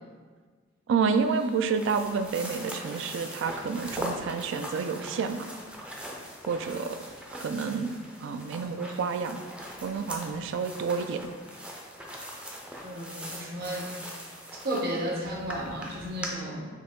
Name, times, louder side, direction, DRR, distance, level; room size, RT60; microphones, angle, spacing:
voice 1, 0.9-5.5 6.5-7.0 7.3-9.4 9.8-11.3, right 5 dB, 65° right, 9 dB, 0.3 m, -29 dB
sound 1, 1.1-16.3, equal, 5° right, 0.4 m, -41 dB
voice 2, 12.8-13.9 14.6-16.7, right 1 dB, 50° right, -2 dB, 0.9 m, -33 dB
4.6 x 2.8 x 3.6 m, 1.5 s
head